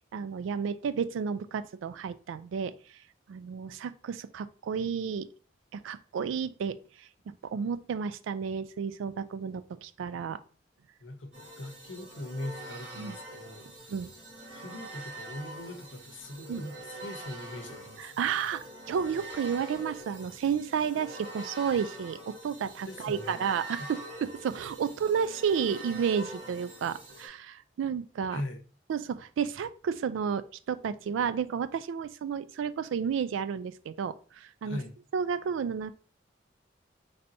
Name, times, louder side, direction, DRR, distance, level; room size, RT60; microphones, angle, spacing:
voice 1, 0.1-2.7 3.3-5.3 5.7-7.1 7.4-10.4 13.0-13.1 13.9-14.1 16.5-16.6 18.0-24.0 24.3-28.4 28.9-34.8 35.1-35.9, right 7 dB, 85° right, 0.3 m, -32 dB
voice 2, 11.0-13.9 14.5-18.1 22.8-23.4 23.8-23.9 28.3-28.6 34.6-34.9, left 1 dB, 80° left, 0.7 m, -41 dB
sound 1, 11.3-27.3, right 2 dB, 70° right, 1.5 m, -44 dB
4.1 x 3.3 x 2.6 m
head